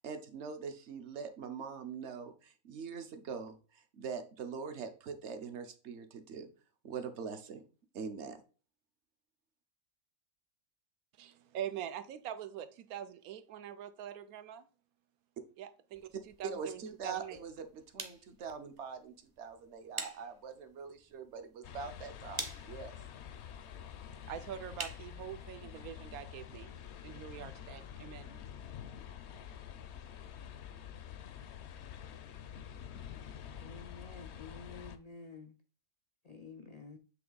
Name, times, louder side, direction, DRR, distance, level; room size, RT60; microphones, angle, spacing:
voice 1, 0.0-6.5 6.8-7.6 7.9-8.4 16.4-23.0, right 6 dB, 55° right, 1.0 m, -43 dB
voice 2, 11.2-14.6 15.6-17.4 24.3-26.7 27.0-28.3, right 10 dB, 80° right, 1.1 m, -44 dB
sound 1, 15.9-25.7, right 3 dB, 20° right, 0.6 m, -48 dB
sound 2, 21.6-35.0, left 9 dB, 60° left, 0.7 m, -48 dB
voice 3, 33.6-35.5 36.2-37.0, left 4 dB, 80° left, 0.3 m, -50 dB
7.7 x 3.3 x 3.9 m
omnidirectional pair, 1.5 m